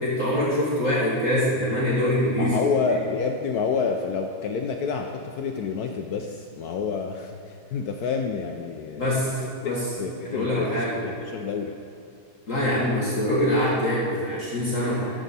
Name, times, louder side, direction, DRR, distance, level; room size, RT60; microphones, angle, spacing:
voice 1, 0.0-2.6 9.0-9.3 9.6-9.8 10.2-11.0 12.5-15.2, left 1 dB, 40° left, -6 dB, 1.7 m, -24 dB
voice 2, 2.4-11.7, left 5 dB, 80° left, 3 dB, 0.8 m, -29 dB
11.5 x 7.3 x 4.1 m, 2.6 s
omnidirectional pair, 2.3 m